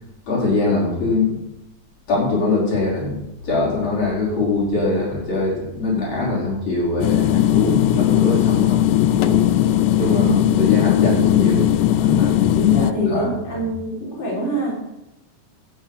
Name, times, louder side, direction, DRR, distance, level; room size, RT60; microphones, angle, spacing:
voice 1, 0.3-1.4 2.1-9.4 9.8-11.6 12.0-13.3, left 3 dB, 60° left, -5 dB, 5.7 m, -22 dB
sound 1, 7.0-12.9, left 12 dB, 85° left, 2.1 m, -18 dB
voice 2, 12.6-14.8, right 2 dB, 20° left, -5 dB, 4.2 m, -26 dB
12.0 x 9.7 x 5.6 m, 0.86 s
omnidirectional pair, 3.5 m